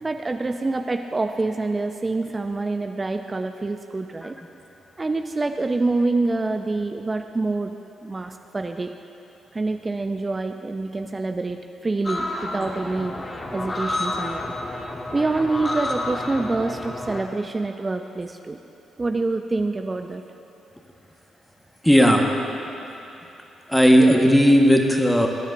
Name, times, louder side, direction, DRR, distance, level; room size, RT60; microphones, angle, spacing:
voice 1, 0.0-4.4 5.0-7.7 8.0-8.9 9.5-13.2 13.5-14.5 15.1-18.6 19.0-20.2, right 3 dB, 30° right, 6 dB, 0.5 m, -26 dB
sound 1, 12.0-17.2, left 2 dB, 30° left, 1.5 m, -30 dB
voice 2, 21.8-22.2 23.7-25.3, equal, 5° left, 2 dB, 1.4 m, -15 dB
22.0 x 10.0 x 2.6 m, 2.9 s
hypercardioid pair, 40°, 0 cm